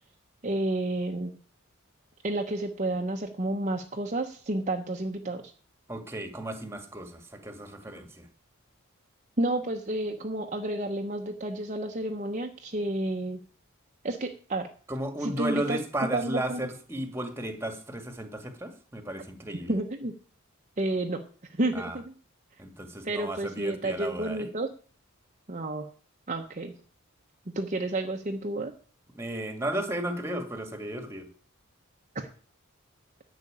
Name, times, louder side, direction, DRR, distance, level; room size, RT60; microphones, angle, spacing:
voice 1, 0.4-1.4 2.2-5.4 9.4-13.4 14.0-14.7 15.2-15.8 16.1-16.6 19.7-20.1 20.8-21.2 21.6-22.0 23.0-24.7 25.5-25.9 26.3-26.7 27.5-28.7 32.1-32.3, right 1 dB, 35° right, 3 dB, 1.0 m, -30 dB
voice 2, 5.9-8.3 14.9-19.8 21.7-22.0 22.6-24.5 29.1-31.3, right 1 dB, 10° right, 7 dB, 1.7 m, -34 dB
11.0 x 6.1 x 8.6 m, 0.41 s
head